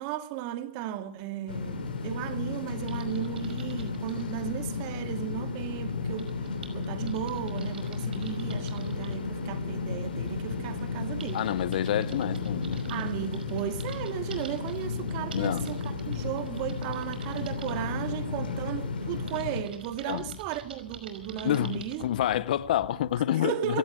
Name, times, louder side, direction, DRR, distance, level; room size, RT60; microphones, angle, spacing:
voice 1, 0.0-6.3 6.7-11.4 12.9-22.0 23.4-23.8, right 11 dB, 40° right, 2.1 m, -35 dB
sound 1, 1.5-19.6, left 4 dB, 75° left, 5.6 m, -33 dB
Typing, 2.9-4.3 6.2-9.2 10.2-10.3 10.8-17.7 19.3-22.0, right 6 dB, 75° right, 5.3 m, -49 dB
sound 2, 8.5-23.2, right 7 dB, 25° right, 6.7 m, -51 dB
voice 2, 11.3-12.8 15.3-15.8 20.1-20.4 21.4-23.8, left 12 dB, 60° left, 0.9 m, -28 dB
24.0 x 17.5 x 6.5 m
hypercardioid pair, 130°, 5 cm